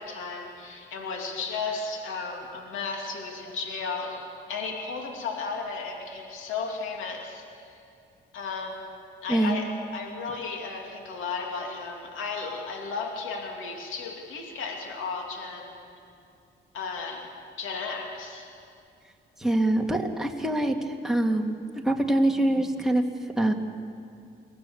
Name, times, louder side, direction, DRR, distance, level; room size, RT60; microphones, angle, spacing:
voice 1, 0.0-7.7 8.3-8.9 9.2-15.8 16.7-18.5, left 4 dB, 85° left, 2 dB, 2.7 m, -34 dB
voice 2, 19.4-23.0 23.4-23.5, right 1 dB, ahead, 2 dB, 2.0 m, -24 dB
23.5 x 17.0 x 7.0 m, 2.6 s
cardioid pair, 90°, 20 cm